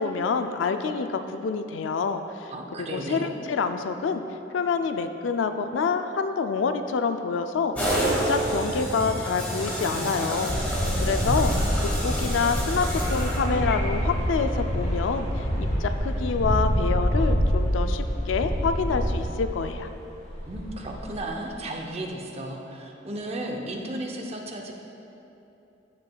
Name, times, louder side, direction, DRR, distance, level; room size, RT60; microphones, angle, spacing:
voice 1, 0.0-2.5 2.8-4.2 4.5-11.5 11.8-19.9, left 5 dB, 75° left, 8 dB, 0.4 m, -27 dB
voice 2, 2.5-3.3 20.5-24.7, right 1 dB, 30° right, 1 dB, 0.6 m, -34 dB
sound 1, 7.8-13.8, equal, 10° left, 1.2 m, -29 dB
sound 2, 10.5-19.9 20.2-21.5, equal, 35° left, 1.2 m, -26 dB
9.4 x 7.4 x 2.3 m, 2.9 s
head